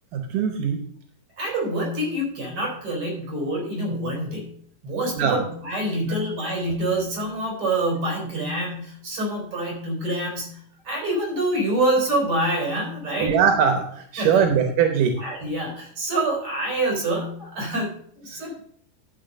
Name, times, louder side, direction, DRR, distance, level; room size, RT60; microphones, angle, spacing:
voice 1, 0.1-0.8 5.2-5.4 6.0-6.2 13.2-15.2 18.3-18.5, right 7 dB, 80° right, 5 dB, 2.5 m, -21 dB
voice 2, 1.4-4.5 4.8-13.3 14.2-14.6 15.2-18.6, right 1 dB, 40° right, -1 dB, 5.1 m, -26 dB
12.0 x 4.8 x 6.4 m, 0.62 s
omnidirectional pair, 3.7 m